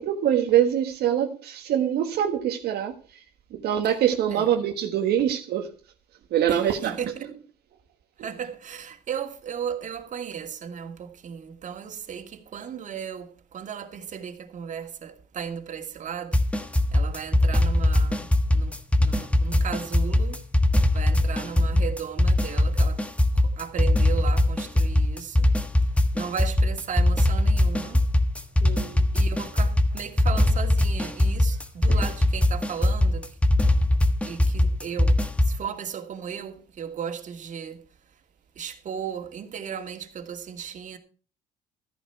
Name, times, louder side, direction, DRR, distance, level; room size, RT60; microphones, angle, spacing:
voice 1, 0.0-3.2 3.5-5.7 6.3-7.0 28.6-29.0 31.9-32.0, right 10 dB, 75° right, 1.6 m, -24 dB
voice 2, 6.5-7.3 8.2-20.4 20.9-25.5 25.8-28.0 29.1-33.4 34.2-37.8 38.1-38.2 38.6-41.0, right 7 dB, 50° right, 2.5 m, -36 dB
sound 1, 16.3-35.6, left 1 dB, 5° left, 1.3 m, -21 dB
14.0 x 10.5 x 4.6 m
cardioid pair, 110°, 17 cm